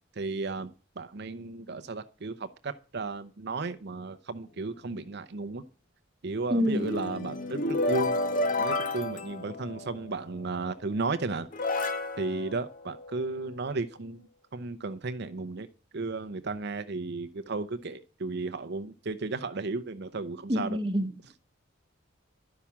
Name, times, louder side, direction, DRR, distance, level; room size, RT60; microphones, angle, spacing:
voice 1, 0.2-5.6 6.2-8.1 8.5-11.5 12.2-14.2 14.5-15.7 15.9-20.8, right 3 dB, 55° right, 0.7 m, -34 dB
sound 1, 6.4-10.2 11.0-11.1 11.5-13.5, left 2 dB, 45° left, 1.2 m, -31 dB
voice 2, 6.5-6.9 20.5-21.1, equal, 25° right, 1.0 m, -27 dB
11.5 x 5.9 x 8.5 m
head